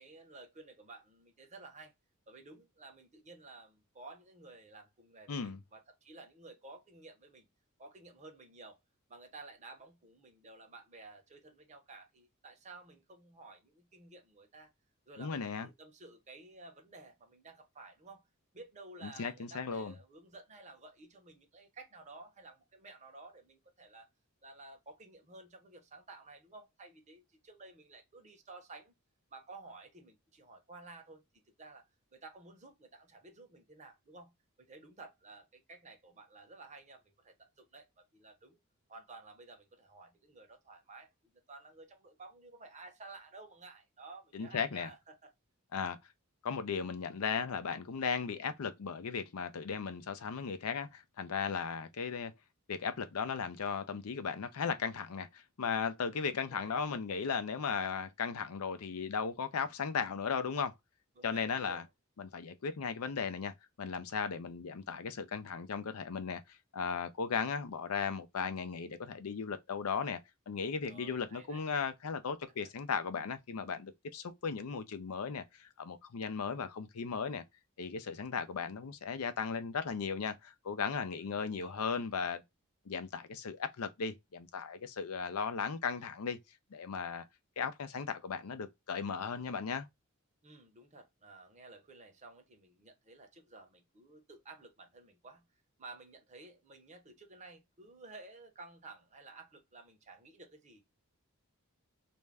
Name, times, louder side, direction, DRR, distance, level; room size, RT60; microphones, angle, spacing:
voice 1, 0.0-1.9 2.3-7.5 7.8-8.8 9.1-14.7 15.1-18.3 18.5-24.1 24.4-28.9 29.3-31.8 32.1-38.6 38.9-45.3 56.1-56.8 61.2-61.8 70.8-71.6 81.2-81.8 90.4-95.5 95.8-100.9, right 3 dB, 35° right, 0.8 m, -54 dB
voice 2, 5.3-5.6 15.2-15.7 19.0-19.9 44.3-44.9 45.7-46.0 46.4-52.3 52.7-60.7 61.2-61.8 62.2-70.2 70.5-77.4 77.8-82.4 82.9-86.4 86.7-87.2 87.6-89.9, left 6 dB, 75° left, 0.5 m, -36 dB
2.5 x 2.2 x 3.2 m
head